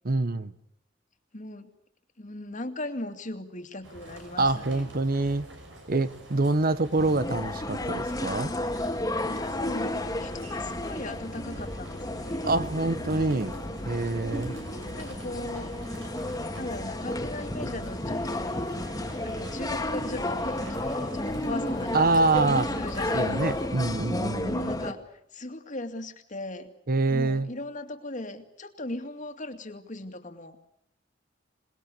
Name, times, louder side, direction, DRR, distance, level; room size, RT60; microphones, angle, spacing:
voice 1, 0.0-0.5 4.4-5.5 5.9-8.5 12.4-13.5 13.8-14.6 21.9-22.7 23.1-24.7 26.9-27.5, right 2 dB, 50° right, 14 dB, 1.0 m, -25 dB
voice 2, 1.3-1.7 2.2-4.9 9.2-12.6 14.9-15.7 16.6-18.6 19.2-23.6 24.4-25.0 25.3-26.7 27.1-30.7, left 2 dB, 45° left, 7 dB, 2.4 m, -38 dB
sound 1, 3.8-23.7, right 1 dB, 90° right, 6.2 m, -45 dB
sound 2, 7.0-24.9, left 1 dB, 20° left, 1.9 m, -32 dB
27.5 x 20.0 x 8.4 m, 0.71 s
head